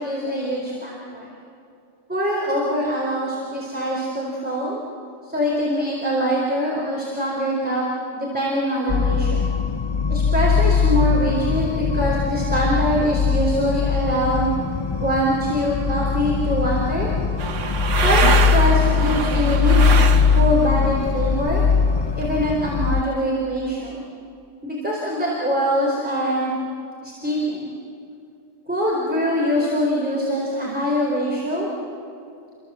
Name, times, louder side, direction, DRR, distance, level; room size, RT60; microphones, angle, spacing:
voice 1, 0.0-1.3 2.1-4.8 5.2-7.9 8.1-9.5 10.1-14.5 15.0-17.1 18.0-20.0 20.3-21.6 22.1-24.0 24.6-26.5 27.0-27.7 28.7-31.7, equal, 10° right, -4 dB, 4.3 m, -23 dB
sound 1, 8.9-23.0, left 6 dB, 30° left, 0.6 m, -21 dB
sound 2, 17.4-20.7 21.0-22.3, right 6 dB, 85° right, 1.5 m, -25 dB
29.0 x 25.5 x 7.7 m, 2.4 s
omnidirectional pair, 1.2 m